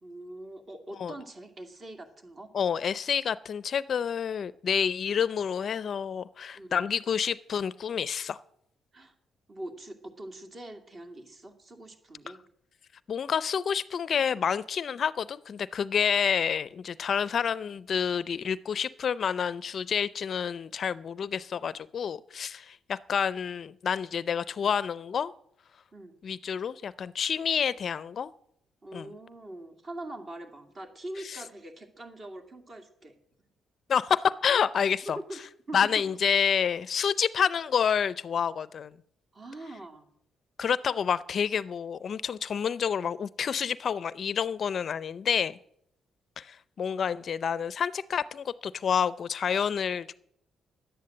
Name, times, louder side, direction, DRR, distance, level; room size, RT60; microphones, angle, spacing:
voice 1, 0.0-2.5 6.5-6.8 8.9-9.1 9.5-12.4 25.9-26.1 28.8-33.1 35.2-35.4 35.7-36.0 39.3-40.1, right 1 dB, 40° right, 5 dB, 2.4 m, -43 dB
voice 2, 2.5-8.4 13.1-25.3 26.2-28.3 28.9-29.1 31.3-31.4 33.9-35.2 35.7-38.9 40.6-45.6 46.4-50.1, left 7 dB, 55° left, 17 dB, 0.5 m, -28 dB
11.0 x 9.4 x 7.7 m, 0.71 s
cardioid pair, 90°, 0 cm